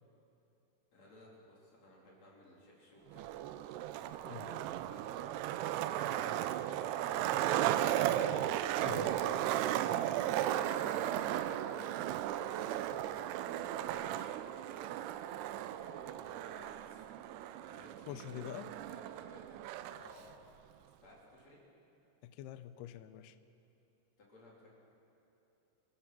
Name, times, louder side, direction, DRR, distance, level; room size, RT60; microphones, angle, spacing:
voice 1, 0.9-3.3 4.0-8.4 9.8-12.9 13.6-18.4 18.8-20.3 20.7-21.6 24.2-24.7, left 1 dB, 40° left, -4 dB, 4.3 m, -58 dB
Skateboard, 3.1-20.1, right 12 dB, 85° right, 2.3 m, -35 dB
voice 2, 4.2-4.7 8.8-9.2 18.1-18.7 22.2-23.4, left 11 dB, 80° left, 11 dB, 2.4 m, -45 dB
28.0 x 15.5 x 6.1 m, 2.9 s
omnidirectional pair, 5.3 m